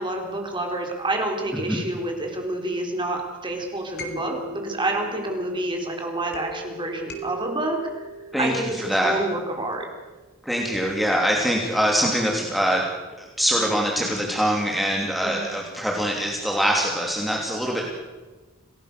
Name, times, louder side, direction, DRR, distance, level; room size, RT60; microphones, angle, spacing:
voice 1, 0.0-8.1 8.4-9.9 15.2-15.5, right 2 dB, 25° right, 1 dB, 3.9 m, -28 dB
sound 1, 4.0-9.8 10.7-12.1 14.0-15.5, left 1 dB, 55° left, 3.7 m, -41 dB
voice 2, 8.3-9.2 10.4-12.8 13.2-17.8, equal, ahead, -2 dB, 2.9 m, -23 dB
27.0 x 18.0 x 6.8 m, 1.2 s
head